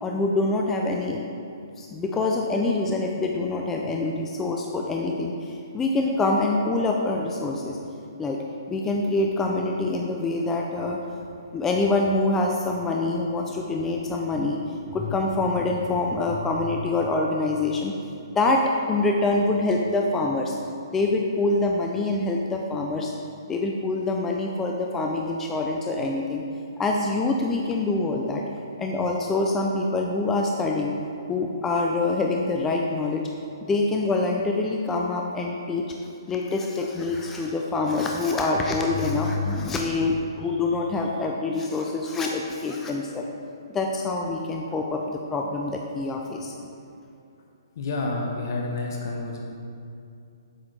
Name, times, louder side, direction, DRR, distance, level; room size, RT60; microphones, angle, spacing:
voice 1, 0.0-1.2 1.8-7.8 8.2-11.0 11.5-14.6 14.9-17.9 18.3-18.6 18.9-20.5 20.9-23.1 23.5-26.4 26.8-28.4 28.8-30.9 31.3-33.3 33.6-35.9 36.3-43.3 43.7-46.7, left 2 dB, 15° left, 0 dB, 0.3 m, -25 dB
voice 2, 47.8-49.4, left 2 dB, 55° left, 0 dB, 0.7 m, -29 dB
7.5 x 4.1 x 3.1 m, 2.5 s
hypercardioid pair, 135°, 2 cm